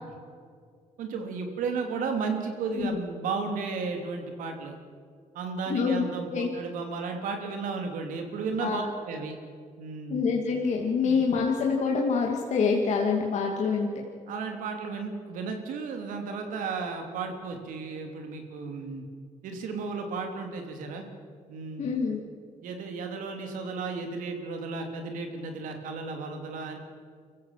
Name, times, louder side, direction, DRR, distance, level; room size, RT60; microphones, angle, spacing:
voice 1, 1.0-4.7 5.3-9.4 9.8-10.2 11.0-11.2 14.3-19.0 19.4-21.0 21.5-21.9 22.6-26.8, right 4 dB, 90° right, 4 dB, 3.0 m, -34 dB
voice 2, 5.7-6.5 8.6-8.8 10.1-13.9 21.8-22.2, left 5 dB, 60° left, 0 dB, 2.3 m, -26 dB
24.5 x 15.5 x 7.4 m, 2.1 s
cardioid pair, 105°, 13 cm